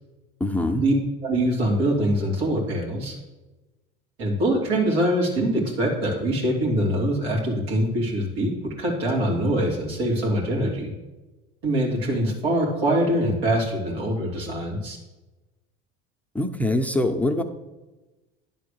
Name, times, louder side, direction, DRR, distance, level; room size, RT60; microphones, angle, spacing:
voice 1, 0.4-0.9 16.3-17.4, left 1 dB, 5° left, 6 dB, 0.7 m, -23 dB
voice 2, 1.2-3.2 4.2-10.9 11.6-15.0, right 1 dB, 85° right, -3 dB, 2.7 m, -23 dB
10.5 x 3.9 x 6.6 m, 1.1 s
hypercardioid pair, 85°, 30 cm